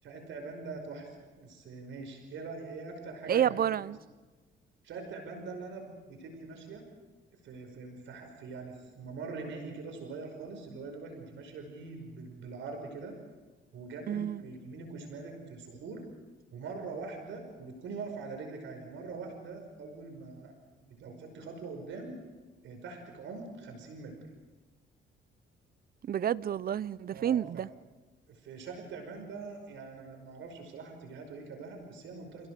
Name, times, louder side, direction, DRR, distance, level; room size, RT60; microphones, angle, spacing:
voice 1, 0.0-3.6 4.8-6.8 7.4-13.1 13.7-16.1 16.5-20.5 20.8-22.2 22.6-24.2 27.1-27.6 28.3-32.5, right 4 dB, 75° right, 5.4 m, -43 dB
voice 2, 3.3-4.0 14.1-14.4 26.0-27.7, right 10 dB, 50° right, 0.6 m, -29 dB
29.0 x 17.0 x 6.7 m
cardioid pair, 90°, 20 cm